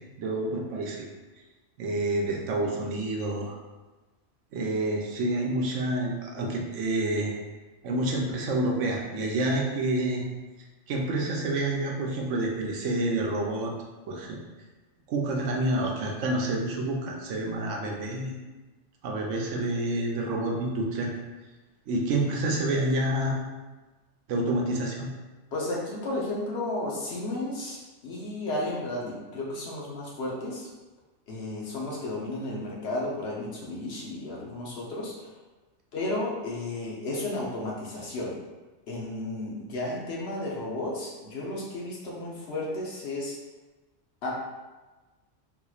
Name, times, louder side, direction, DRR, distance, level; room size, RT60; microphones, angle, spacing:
voice 1, 0.2-1.1 1.8-3.6 4.5-7.3 7.8-10.2 10.9-13.7 14.1-14.4 15.1-18.3 19.0-21.1 21.9-23.4 24.3-25.1, right 1 dB, 85° right, 0 dB, 1.0 m, -28 dB
voice 2, 25.5-30.7 31.3-35.3 35.9-38.4 38.9-43.4 44.2-44.3, left 2 dB, 60° left, -3 dB, 1.0 m, -33 dB
3.9 x 3.0 x 2.4 m, 1.2 s
omnidirectional pair, 1.2 m